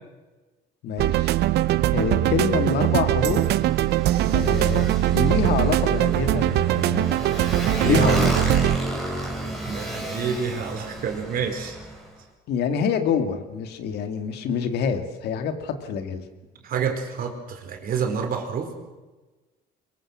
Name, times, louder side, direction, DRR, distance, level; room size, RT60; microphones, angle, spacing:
voice 1, 0.8-1.3 1.9-3.5 4.3-4.9 5.1-7.2 7.8-8.3 12.5-16.3, left 6 dB, 75° left, 7 dB, 2.2 m, -26 dB
sound 1, 1.0-8.8, right 14 dB, 75° right, 0.8 m, -21 dB
Motorcycle, 1.5-12.1, right 1 dB, ahead, 5.0 m, -32 dB
voice 2, 7.8-8.2 9.7-11.8 16.6-18.7, right 6 dB, 60° right, 4 dB, 4.2 m, -28 dB
23.5 x 21.0 x 6.2 m, 1.2 s
cardioid pair, 110°, 17 cm